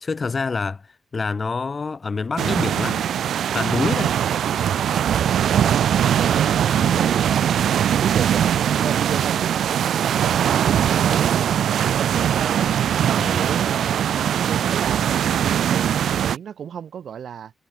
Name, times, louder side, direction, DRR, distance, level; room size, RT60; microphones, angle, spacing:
voice 1, 0.0-3.1 3.5-4.2 6.8-7.1 13.2-13.5, left 4 dB, 35° left, 1.5 m, -27 dB
sound 1, 2.4-16.4, right 9 dB, 85° right, 0.8 m, -21 dB
voice 2, 6.2-7.3 7.9-12.7 13.3-15.4 15.6-17.5, right 8 dB, 70° right, 3.0 m, -33 dB
wide cardioid pair, 130°, 0 cm